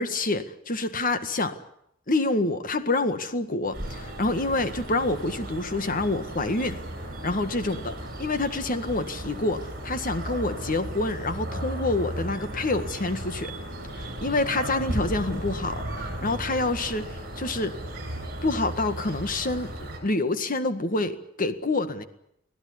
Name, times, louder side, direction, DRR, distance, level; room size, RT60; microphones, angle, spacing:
voice 1, 0.0-1.6 2.1-6.8 7.2-7.9 8.2-13.5 14.0-17.7 18.4-19.7 20.0-22.0, left 2 dB, 45° left, 10 dB, 1.8 m, -27 dB
sound 1, 3.7-20.0, right 1 dB, 45° right, 7.7 m, -35 dB
25.0 x 16.0 x 9.9 m, 0.77 s
head